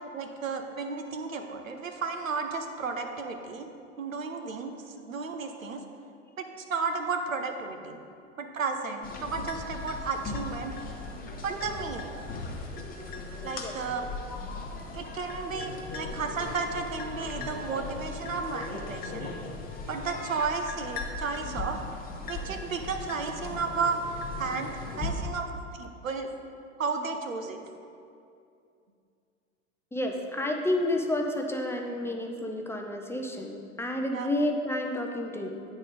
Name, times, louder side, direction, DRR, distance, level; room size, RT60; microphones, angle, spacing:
voice 1, 0.1-3.7 4.0-4.7 5.1-5.8 6.4-8.0 8.4-10.7 11.4-12.1 13.4-14.0 14.9-19.3 19.9-21.8 22.3-26.3 26.8-27.6 34.1-34.3, right 4 dB, 90° right, 5 dB, 0.8 m, -33 dB
sound 1, 9.0-25.1, left 3 dB, 20° left, 1.0 m, -38 dB
voice 2, 29.9-35.7, left 1 dB, 5° left, 2 dB, 0.5 m, -30 dB
8.9 x 4.1 x 5.2 m, 2.5 s
figure-of-eight pair, 85°, 39 cm